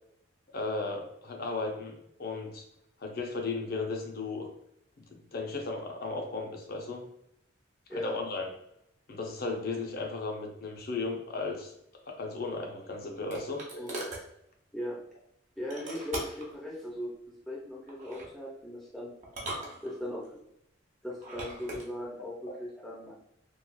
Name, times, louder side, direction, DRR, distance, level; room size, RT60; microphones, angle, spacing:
voice 1, 0.5-2.6 3.0-4.5 5.1-7.0 8.0-8.5 9.1-11.7 12.1-13.8, left 3 dB, 45° left, 1 dB, 0.6 m, -35 dB
sound 1, 12.5-14.3 15.7-16.5 17.9-18.3 19.2-20.3 21.1-21.9, right 1 dB, 35° right, 0.7 m, -40 dB
voice 2, 15.6-17.1 17.5-19.1 19.8-20.4 21.0-23.1, left 1 dB, ahead, -6 dB, 0.5 m, -38 dB
3.1 x 2.4 x 2.2 m, 0.76 s
head